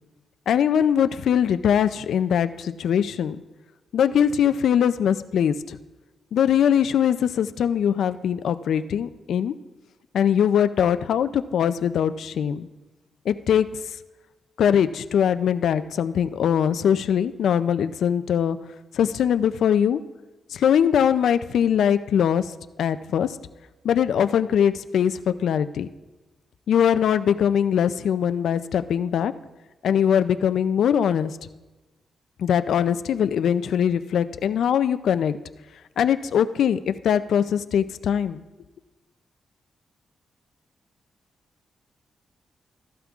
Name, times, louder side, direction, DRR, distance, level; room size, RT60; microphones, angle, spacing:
voice 1, 0.5-3.4 3.9-5.8 6.3-9.5 10.1-12.7 13.3-13.7 14.6-18.6 18.9-20.0 20.5-22.5 22.8-23.4 23.8-25.9 26.7-29.3 29.8-31.3 32.4-35.4 36.0-38.4, left 8 dB, 80° left, 12 dB, 0.4 m, -21 dB
14.5 x 12.0 x 2.4 m, 1.1 s
cardioid pair, 85°, 0 cm